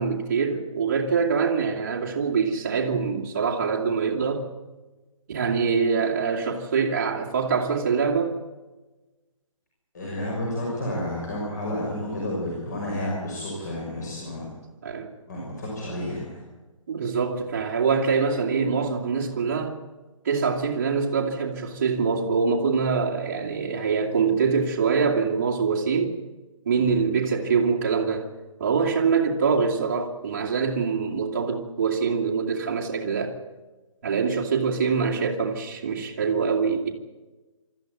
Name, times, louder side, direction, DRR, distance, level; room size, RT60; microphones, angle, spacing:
voice 1, 0.0-4.5 5.3-8.4 14.8-15.1 16.9-19.7 20.2-26.1 26.7-28.3 28.6-33.3 34.0-36.9, right 5 dB, 25° right, 2.2 m, -24 dB
voice 2, 9.9-14.4 15.3-16.4 26.7-26.9, left 1 dB, 30° left, 6.0 m, -31 dB
25.0 x 13.5 x 9.4 m
hypercardioid pair, 180°, 17 cm